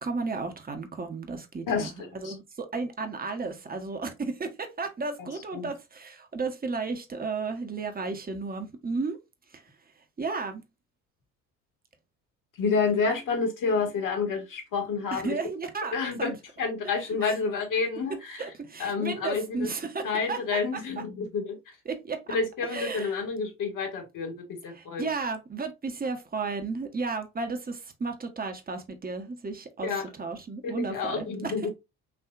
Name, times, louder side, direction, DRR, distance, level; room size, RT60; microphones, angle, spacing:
voice 1, 0.0-9.2 9.5-9.6 10.2-10.6 15.1-16.3 16.8-16.9 17.2-17.3 18.4-20.6 21.9-22.3 22.7-23.1 24.7-31.5, right 4 dB, 20° right, 1.0 m, -33 dB
voice 2, 1.7-2.3 5.2-5.7 12.6-15.4 15.9-18.4 18.8-19.7 20.0-21.8 22.3-25.1 29.8-30.0 30.6-31.7, left 4 dB, 45° left, 1.6 m, -29 dB
5.9 x 2.7 x 2.5 m
figure-of-eight pair, 55°, 44 cm